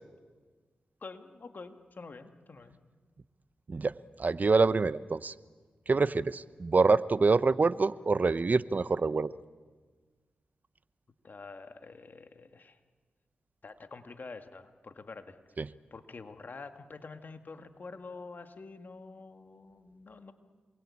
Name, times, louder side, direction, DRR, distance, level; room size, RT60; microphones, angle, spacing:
voice 1, 1.0-2.8 11.2-12.8 13.6-15.4 15.9-20.3, left 4 dB, 55° left, 7 dB, 2.1 m, -47 dB
voice 2, 4.2-5.3 5.9-9.3 15.6-15.7, right 4 dB, 45° right, 16 dB, 0.8 m, -26 dB
27.0 x 22.0 x 8.7 m, 1.4 s
cardioid pair, 45°, 4 cm